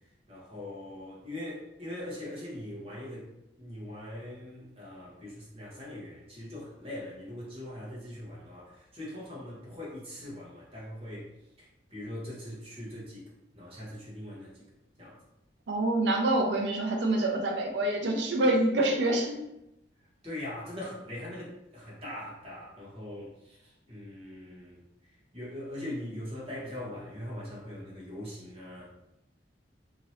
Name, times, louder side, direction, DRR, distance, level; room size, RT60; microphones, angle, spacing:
voice 1, 0.3-3.3 3.6-11.3 11.6-13.2 13.5-14.6 15.0-15.2 20.2-24.8 25.3-28.9, left 1 dB, 30° right, -6 dB, 1.1 m, -41 dB
voice 2, 15.7-19.4, right 1 dB, 60° right, 1 dB, 0.5 m, -26 dB
2.8 x 2.7 x 3.1 m, 0.87 s
head